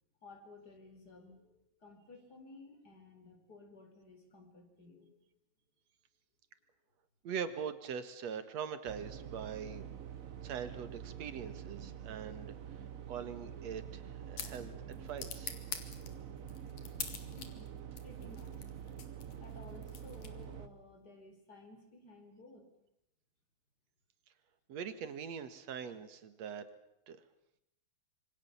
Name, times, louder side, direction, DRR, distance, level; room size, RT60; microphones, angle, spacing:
voice 1, 0.2-5.2 17.4-17.7 18.0-18.5 19.4-22.7, left 2 dB, 30° left, 5 dB, 4.8 m, -55 dB
voice 2, 7.2-9.9 10.4-12.5 13.1-15.5 24.7-26.7 27.1-27.2, right 7 dB, 65° right, 11 dB, 2.7 m, -42 dB
sound 1, 8.9-20.7, right 9 dB, 80° right, 0.7 m, -47 dB
sound 2, 13.7-20.7, left 7 dB, 80° left, 3.5 m, -47 dB
26.5 x 24.0 x 7.2 m, 0.82 s
omnidirectional pair, 3.3 m